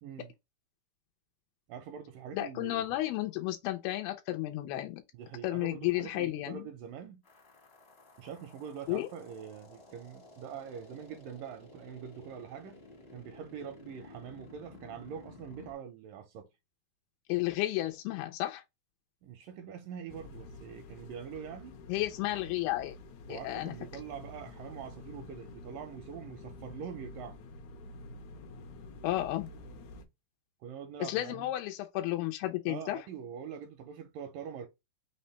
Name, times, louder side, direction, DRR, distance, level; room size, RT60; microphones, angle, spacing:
voice 1, 0.0-0.3 1.7-3.0 5.1-7.2 8.2-12.8 13.1-16.5 19.2-21.7 23.3-27.4 30.6-31.5 32.7-34.7, right 8 dB, 80° right, 2.1 m, -44 dB
voice 2, 2.3-5.0 5.4-6.6 8.9-9.1 17.3-18.6 21.9-23.0 23.3-23.7 29.0-29.5 31.0-33.0, left 16 dB, 90° left, 2.6 m, -32 dB
sound 1, 7.2-15.7, left 2 dB, 40° left, 0.8 m, -54 dB
sound 2, 20.1-30.1, left 3 dB, 70° left, 1.8 m, -49 dB
5.8 x 2.2 x 4.0 m
omnidirectional pair, 4.4 m